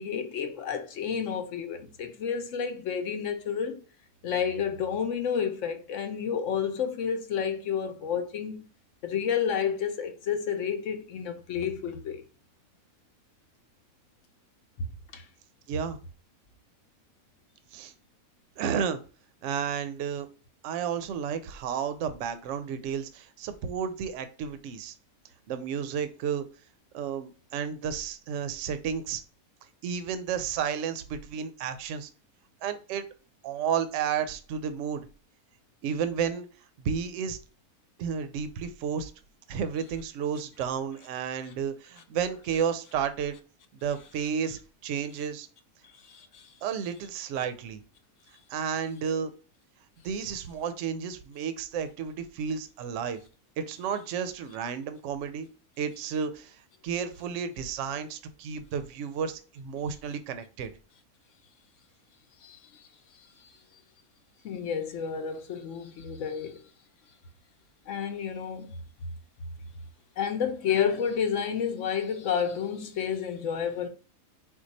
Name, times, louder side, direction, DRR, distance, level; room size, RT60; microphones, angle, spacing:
voice 1, 0.0-3.8 4.2-8.7 9.0-12.2 14.8-14.9 15.1-15.2 45.8-46.5 62.4-62.6 64.4-66.6 67.9-68.8 70.2-73.9, left 7 dB, 65° left, 0.9 m, -30 dB
voice 2, 15.7-16.0 17.7-17.9 18.6-19.0 19.4-20.3 20.6-24.9 25.5-26.5 26.9-29.2 29.8-32.1 32.6-33.0 33.4-35.1 35.8-36.5 36.8-37.4 38.0-39.1 39.5-43.3 43.8-45.5 46.6-47.8 48.5-49.3 50.0-53.2 53.6-55.5 55.8-60.7, right 7 dB, 65° right, 0.8 m, -32 dB
4.5 x 2.3 x 4.0 m
omnidirectional pair, 1.5 m